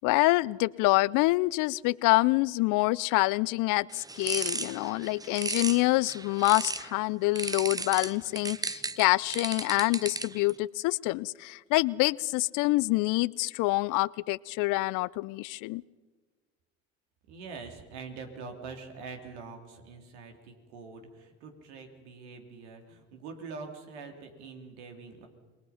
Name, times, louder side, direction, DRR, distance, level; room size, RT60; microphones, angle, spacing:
voice 1, 0.0-15.8, left 22 dB, 65° left, 22 dB, 0.6 m, -26 dB
sound 1, 3.9-6.9 7.4-10.5, right 3 dB, 10° right, 0.6 m, -35 dB
voice 2, 17.3-25.3, right 4 dB, 85° right, 4 dB, 3.0 m, -44 dB
27.0 x 20.5 x 5.7 m, 1.4 s
hypercardioid pair, 75°, 33 cm